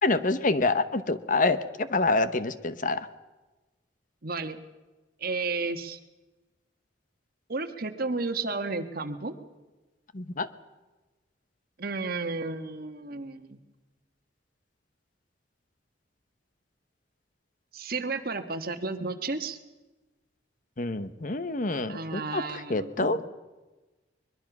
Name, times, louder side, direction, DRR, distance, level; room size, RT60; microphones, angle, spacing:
voice 1, 0.0-3.1 10.1-10.5 20.8-23.2, left 3 dB, 45° left, 12 dB, 0.9 m, -27 dB
voice 2, 4.2-4.6 5.2-6.0 7.5-9.3 11.8-13.6 17.7-19.6 21.9-23.2, right 3 dB, 55° right, 8 dB, 1.4 m, -32 dB
22.5 x 21.5 x 6.0 m, 1.2 s
head